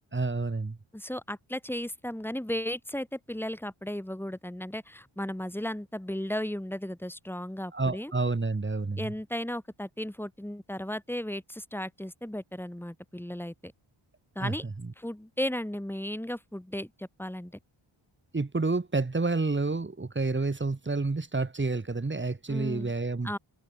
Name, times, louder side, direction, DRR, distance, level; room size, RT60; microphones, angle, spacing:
voice 1, 0.1-0.8 7.7-9.1 14.4-14.5 18.3-23.4, right 3 dB, 20° right, 3.8 m, -29 dB
voice 2, 0.9-8.1 9.0-13.7 14.3-14.6 15.0-17.5 22.5-22.9 23.2-23.4, left 1 dB, 5° left, 7.9 m, -35 dB
wide cardioid pair, 145°, 50 cm